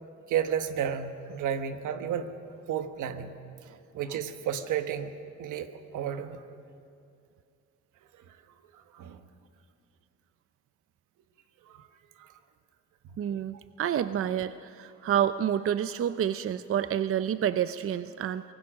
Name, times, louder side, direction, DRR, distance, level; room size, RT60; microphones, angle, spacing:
voice 1, 0.3-2.3 2.7-3.4 3.9-5.1 5.4-6.4 8.3-8.4 8.7-9.3 11.7-11.9 12.2-12.3 13.0-13.2, right 8 dB, 80° right, 8 dB, 1.3 m, -32 dB
voice 2, 13.2-18.4, right 10 dB, 45° right, 13 dB, 0.6 m, -28 dB
24.5 x 18.0 x 6.3 m, 2.5 s
cardioid pair, 90°, 30 cm